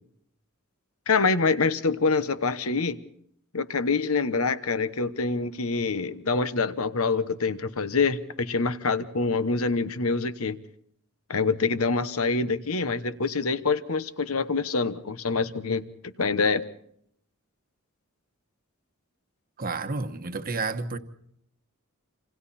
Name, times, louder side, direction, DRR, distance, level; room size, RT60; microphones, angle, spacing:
voice 1, 1.1-3.0 3.5-10.6 11.3-15.8 16.2-16.6, left 4 dB, 75° left, 1.2 m, -25 dB
voice 2, 19.6-21.0, right 3 dB, 40° right, 1.2 m, -30 dB
27.5 x 27.0 x 4.3 m
head